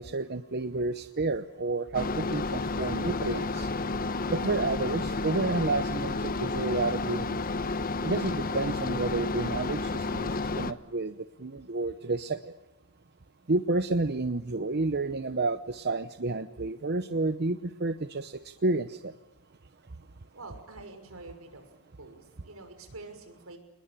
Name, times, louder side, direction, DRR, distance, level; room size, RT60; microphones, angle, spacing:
voice 1, 0.0-3.7 4.3-7.4 8.0-12.5 13.5-19.2 19.9-20.0, right 2 dB, 50° right, 11 dB, 0.9 m, -30 dB
sound 1, 1.9-10.7, left 3 dB, 40° left, 1.1 m, -31 dB
voice 2, 20.3-21.6 22.0-23.6, right 2 dB, 80° right, 6 dB, 6.2 m, -46 dB
27.5 x 21.0 x 9.0 m, 0.97 s
head